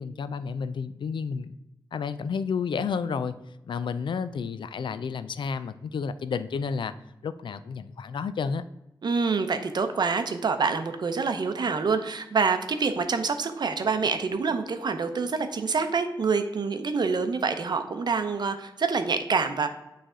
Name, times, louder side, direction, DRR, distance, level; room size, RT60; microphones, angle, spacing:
voice 1, 0.0-1.5 1.9-3.3 3.7-6.9 7.2-8.6, left 6 dB, 75° left, 13 dB, 0.4 m, -31 dB
voice 2, 9.0-19.7, right 5 dB, 60° right, 8 dB, 0.6 m, -26 dB
8.8 x 3.3 x 3.7 m, 0.92 s
wide cardioid pair, 125°, 8 cm